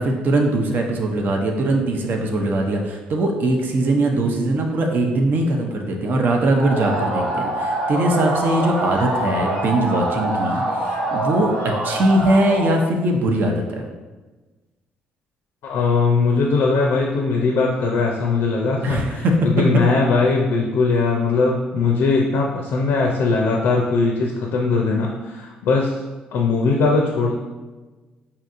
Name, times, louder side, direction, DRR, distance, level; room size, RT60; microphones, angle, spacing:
voice 1, 0.0-13.9 18.8-19.3, right 1 dB, 55° right, 2 dB, 0.6 m, -21 dB
sound 1, 6.5-12.7, right 1 dB, 80° right, 1.1 m, -25 dB
voice 2, 15.6-25.9 26.3-27.3, left 4 dB, 70° left, 0 dB, 0.5 m, -20 dB
5.0 x 2.8 x 2.5 m, 1.2 s
hypercardioid pair, 55°, 4 cm